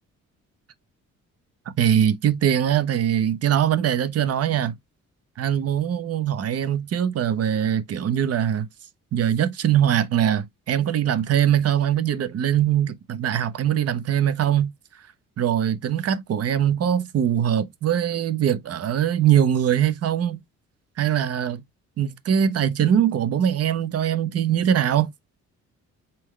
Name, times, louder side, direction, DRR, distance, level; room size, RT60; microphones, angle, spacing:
voice 1, 1.8-4.7 5.4-8.7 9.1-14.7 15.4-20.4 21.0-21.6 22.0-25.1, right 9 dB, 55° right, 0.7 m, -22 dB
4.1 x 3.7 x 3.1 m
cardioid pair, 90°, 30 cm